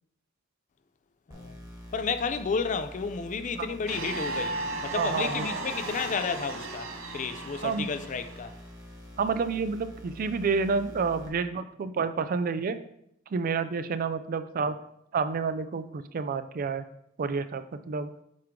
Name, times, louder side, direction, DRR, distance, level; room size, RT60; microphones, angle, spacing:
sound 1, 1.3-11.3, left 1 dB, 20° right, 1.3 m, -47 dB
voice 1, 1.9-8.5, left 5 dB, 40° left, 0.4 m, -32 dB
sound 2, 3.9-8.5, right 3 dB, 90° right, 0.8 m, -35 dB
voice 2, 4.9-5.5 7.6-7.9 9.2-12.8 13.3-14.8 15.1-16.8 17.2-18.1, right 5 dB, 45° right, 0.3 m, -29 dB
7.5 x 3.6 x 3.6 m
head